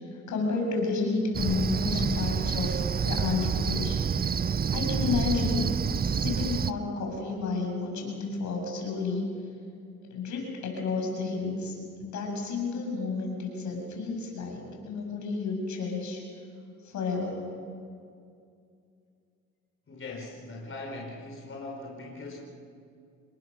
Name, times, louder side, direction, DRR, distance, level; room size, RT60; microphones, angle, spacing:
voice 1, 0.3-4.0 4.7-5.7 6.0-9.3 10.1-11.7 12.0-16.2 16.8-17.5, left 4 dB, 70° left, 1 dB, 7.2 m, -31 dB
Cricket, 1.3-6.7, right 7 dB, 30° right, 0.7 m, -28 dB
voice 2, 19.9-22.4, left 2 dB, 45° left, -1 dB, 4.7 m, -40 dB
27.5 x 21.5 x 6.5 m, 2.4 s
cardioid pair, 90°, 30 cm